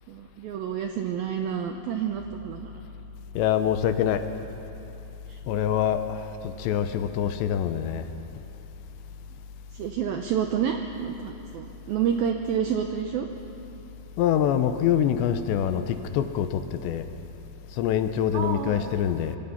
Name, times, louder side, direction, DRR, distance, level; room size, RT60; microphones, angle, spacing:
voice 1, 0.1-2.8 5.3-5.4 9.7-13.3 18.3-18.9, right 8 dB, 85° right, 4 dB, 2.1 m, -29 dB
voice 2, 3.3-4.2 5.5-8.1 14.2-17.1 17.7-19.4, left 9 dB, 80° left, 9 dB, 2.9 m, -25 dB
25.5 x 23.0 x 5.7 m, 2.8 s
omnidirectional pair, 5.4 m